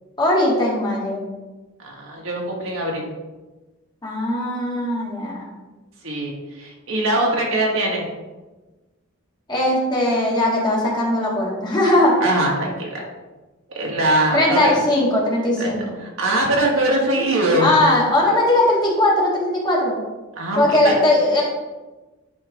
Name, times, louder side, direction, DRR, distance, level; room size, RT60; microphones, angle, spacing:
voice 1, 0.2-1.2 4.0-5.5 9.5-12.1 14.3-15.8 17.6-20.0 20.6-21.4, left 1 dB, 20° left, -4 dB, 1.9 m, -19 dB
voice 2, 1.8-3.1 6.0-8.1 12.2-13.0 13.7-14.8 15.6-15.7 16.0-17.7 20.4-21.0, right 1 dB, 70° right, -2 dB, 1.9 m, -22 dB
10.0 x 4.5 x 3.6 m, 1.2 s
head